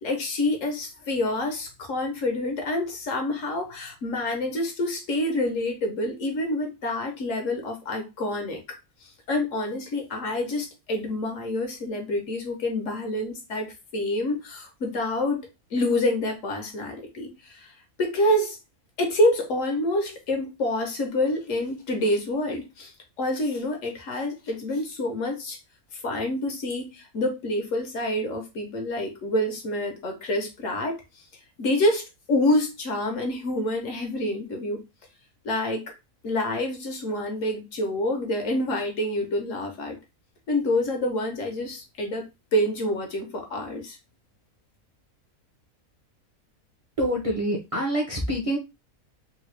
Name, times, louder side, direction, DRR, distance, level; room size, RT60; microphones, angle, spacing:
voice 1, 0.0-15.4 15.7-17.7 18.0-18.6 19.0-22.9 23.2-25.6 25.9-31.0 31.6-34.8 35.4-35.9 36.2-40.0 40.5-44.0, left 1 dB, 65° left, 1.2 m, -27 dB
voice 2, 47.0-48.6, equal, 30° right, 0.7 m, -26 dB
3.7 x 2.3 x 3.2 m
omnidirectional pair, 1.5 m